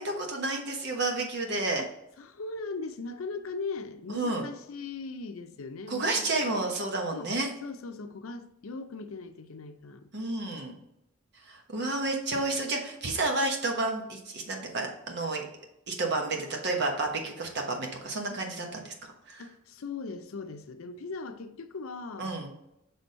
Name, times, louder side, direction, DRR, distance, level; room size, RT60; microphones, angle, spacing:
voice 1, 0.0-1.8 4.1-4.4 5.9-7.5 10.1-10.8 11.4-15.4 15.9-19.4 22.2-22.5, right 2 dB, 55° right, 2 dB, 1.1 m, -31 dB
voice 2, 2.2-6.5 7.1-7.3 7.6-10.1 12.3-12.5 19.4-22.4, left 3 dB, 80° left, 8 dB, 0.6 m, -39 dB
6.1 x 3.4 x 5.4 m, 0.82 s
head